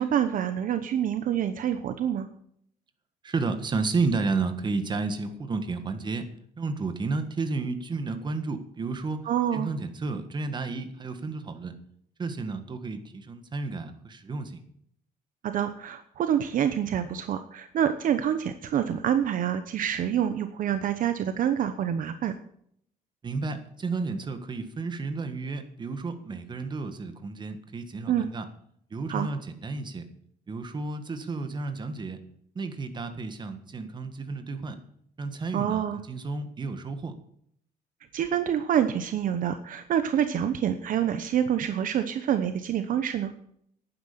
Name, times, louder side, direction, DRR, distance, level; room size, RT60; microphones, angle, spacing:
voice 1, 0.0-2.3 9.2-9.7 15.4-22.3 28.1-28.3 29.1-29.3 35.5-36.0 38.1-43.3, right 9 dB, 55° right, 10 dB, 0.9 m, -27 dB
voice 2, 3.2-6.3 6.6-9.2 9.5-11.7 12.2-14.6 23.2-28.5 28.9-30.0 30.5-32.2 32.5-34.8 35.2-37.1, right 3 dB, 25° right, 8 dB, 1.6 m, -32 dB
11.0 x 9.8 x 6.8 m, 0.67 s
cardioid pair, 140°, 17 cm